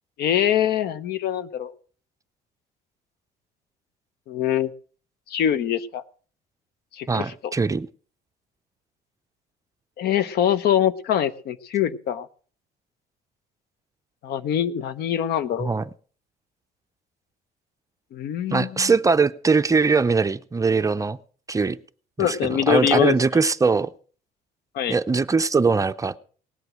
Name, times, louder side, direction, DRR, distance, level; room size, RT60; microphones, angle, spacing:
voice 1, 0.2-1.7 4.3-4.7 5.3-6.0 6.9-7.5 10.0-12.3 14.2-15.7 18.1-18.9 22.2-23.1 24.7-25.0, left 10 dB, 70° left, 16 dB, 0.9 m, -23 dB
voice 2, 7.1-7.9 15.6-15.8 18.5-21.2 21.5-21.8 22.2-22.4 22.7-23.9 24.9-26.2, right 4 dB, 20° right, 12 dB, 0.6 m, -21 dB
18.5 x 8.1 x 6.1 m, 0.44 s
cardioid pair, 110°, 17 cm